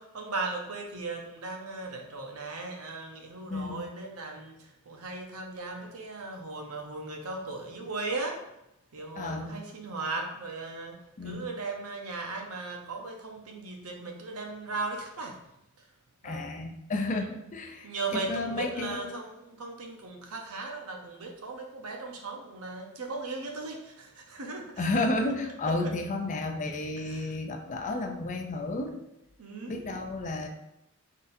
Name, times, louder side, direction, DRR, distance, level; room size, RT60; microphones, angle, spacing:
voice 1, 0.0-8.4 8.9-11.0 11.2-15.4 16.2-16.5 17.1-17.4 17.8-25.3 25.8-25.9 27.0-27.3 29.4-30.0, right 3 dB, 90° right, 2 dB, 0.8 m, -37 dB
voice 2, 3.5-3.8 9.2-9.5 11.2-11.5 16.2-19.1 24.8-28.9 29.7-30.5, left 2 dB, 35° left, 4 dB, 0.5 m, -32 dB
4.1 x 3.7 x 2.6 m, 0.86 s
head